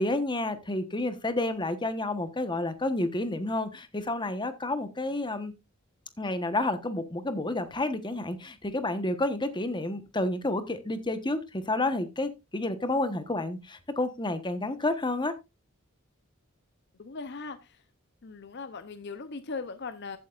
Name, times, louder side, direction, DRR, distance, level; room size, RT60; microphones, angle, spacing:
voice 1, 0.0-5.5 6.2-15.3, left 2 dB, 20° left, 1.2 m, -30 dB
voice 2, 17.0-17.8 18.2-20.2, left 4 dB, 55° left, 0.8 m, -39 dB
15.0 x 8.4 x 2.5 m
head